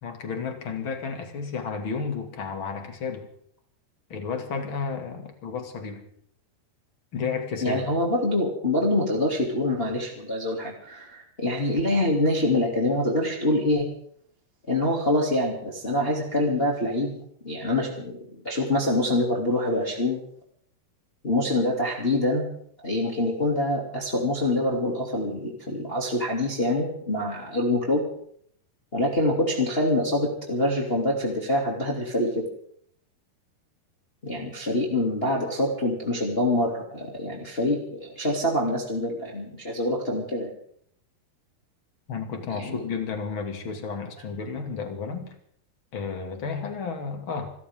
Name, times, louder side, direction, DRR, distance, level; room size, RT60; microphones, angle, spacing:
voice 1, 0.0-3.3 4.1-6.0 7.1-7.9 42.1-45.3 45.9-47.5, left 5 dB, 35° left, 4 dB, 2.4 m, -32 dB
voice 2, 7.6-13.9 14.7-20.2 21.2-22.5 22.8-28.1 28.9-32.4 34.2-40.5 42.5-42.9, left 1 dB, 15° left, -1 dB, 2.3 m, -25 dB
27.0 x 14.0 x 3.7 m, 0.65 s
omnidirectional pair, 4.8 m